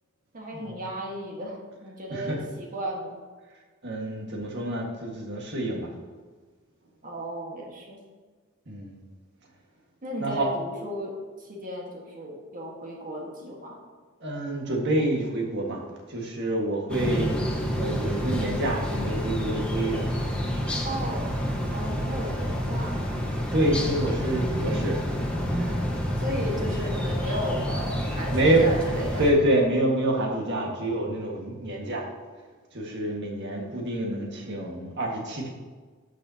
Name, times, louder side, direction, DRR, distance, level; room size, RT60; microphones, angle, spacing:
voice 1, 0.3-3.2 7.0-8.0 10.0-13.8 20.8-21.3 21.7-23.0 26.1-29.2, equal, 40° right, -1 dB, 1.5 m, -35 dB
voice 2, 3.8-5.9 8.7-9.0 10.2-10.4 14.2-15.8 16.1-17.3 17.8-20.0 23.5-25.0 25.6-25.8 28.3-32.1 32.7-35.5, right 1 dB, 60° right, 0 dB, 1.7 m, -27 dB
sound 1, 16.9-29.3, equal, 5° left, 1.3 m, -28 dB
12.0 x 6.6 x 2.8 m, 1.4 s
head